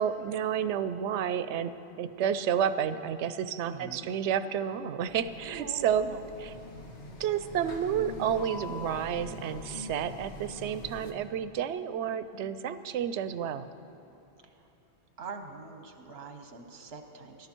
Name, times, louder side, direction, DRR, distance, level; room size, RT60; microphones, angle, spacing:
voice 1, 0.0-6.1 6.4-6.5 7.2-13.7, right 8 dB, 90° right, 13 dB, 0.9 m, -30 dB
voice 2, 3.6-4.1 5.4-6.3 14.4-14.7 15.2-17.5, right 4 dB, 65° right, 6 dB, 1.2 m, -44 dB
sound 1, 5.1-11.1, left 2 dB, 85° left, 1.6 m, -43 dB
18.0 x 12.0 x 4.5 m, 2.9 s
omnidirectional pair, 1.1 m